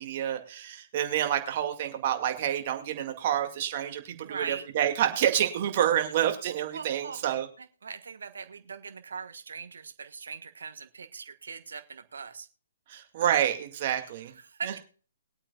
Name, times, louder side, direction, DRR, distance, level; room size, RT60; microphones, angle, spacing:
voice 1, 0.0-7.5 12.9-14.3 14.7-14.8, right 10 dB, 45° right, 5 dB, 2.1 m, -28 dB
voice 2, 4.1-4.6 6.7-12.5 14.4-14.8, right 5 dB, 70° right, 8 dB, 1.3 m, -41 dB
22.0 x 8.7 x 2.3 m, 0.39 s
figure-of-eight pair, 135°, 0 cm